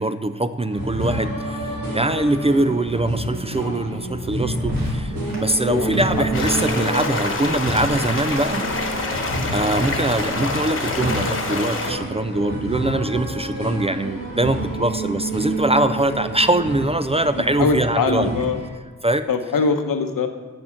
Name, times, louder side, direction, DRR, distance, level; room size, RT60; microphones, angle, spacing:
voice 1, 0.0-8.7 9.5-18.3 19.0-19.3, right 1 dB, 20° right, 10 dB, 0.3 m, -22 dB
sound 1, 0.7-18.7, right 2 dB, 80° right, 2.6 m, -28 dB
sound 2, 4.5-10.5, equal, 55° right, 2.5 m, -37 dB
voice 2, 5.6-6.0 17.6-18.6 19.3-20.3, left 4 dB, 80° left, 7 dB, 0.9 m, -22 dB
sound 3, 6.3-11.9, left 3 dB, 40° left, 1.2 m, -26 dB
8.3 x 6.4 x 5.8 m, 1.4 s
wide cardioid pair, 95°, 33 cm